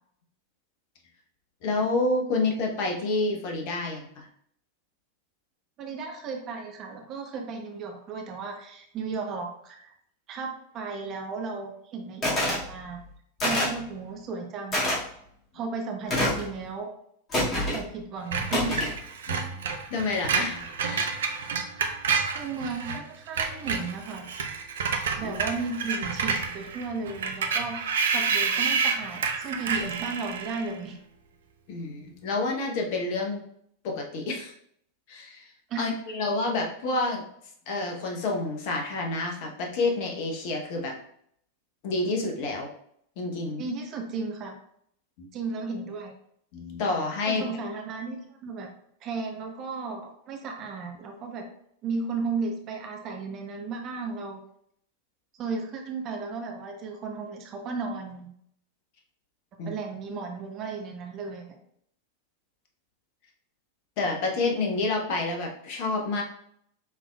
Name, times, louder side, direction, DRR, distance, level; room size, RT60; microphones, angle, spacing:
voice 1, 1.6-4.3 19.3-19.6 19.9-21.0 25.2-25.3 31.7-33.4 33.8-34.5 35.1-35.5 35.8-37.2 37.7-41.0 41.8-42.7 43.2-43.6 45.2-45.3 46.5-47.4 59.6-59.7 64.0-66.2, left 3 dB, 45° left, 1 dB, 0.9 m, -29 dB
voice 2, 5.8-9.9 10.3-13.0 13.4-14.9 15.5-16.9 17.7-18.8 22.3-24.3 25.1-31.0 35.7-35.9 43.6-44.5 45.3-46.1 47.3-48.7 49.0-51.4 51.8-54.4 55.4-58.3 59.6-61.4, right 4 dB, 35° right, 3 dB, 0.8 m, -34 dB
sound 1, 12.2-12.6 13.4-13.8 14.7-15.0 16.1-16.5 17.3-17.8 18.5-19.0, left 1 dB, 25° left, 1.9 m, -26 dB
Screech, 18.3-23.0 23.3-30.7, right 5 dB, 60° right, 0.5 m, -29 dB
5.7 x 3.6 x 2.3 m, 0.68 s
figure-of-eight pair, 90°, 0 cm